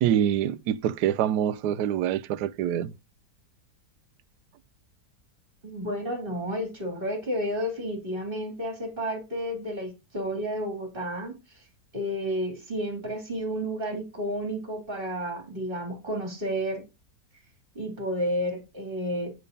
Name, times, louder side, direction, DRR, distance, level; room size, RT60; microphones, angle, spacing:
voice 1, 0.0-2.9, right 10 dB, 80° right, 1.2 m, -25 dB
voice 2, 5.6-11.6 11.9-16.8 17.8-19.3, equal, 30° right, 3.4 m, -31 dB
9.6 x 5.5 x 5.2 m
omnidirectional pair, 1.8 m